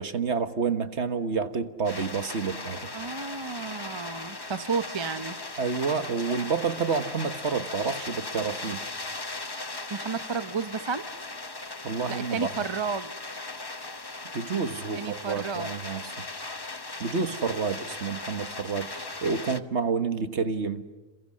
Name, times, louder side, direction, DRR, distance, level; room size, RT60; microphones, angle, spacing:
voice 1, 0.0-2.9 5.6-8.8 11.8-12.7 14.3-16.1 17.0-20.8, right 5 dB, 55° right, 10 dB, 1.7 m, -29 dB
sound 1, 1.8-19.6, left 3 dB, 20° left, 0.9 m, -38 dB
voice 2, 2.9-5.4 9.9-11.1 12.1-13.1 14.9-15.7, right 5 dB, 25° right, 12 dB, 0.7 m, -32 dB
29.5 x 28.5 x 6.4 m, 1.3 s
omnidirectional pair, 1.4 m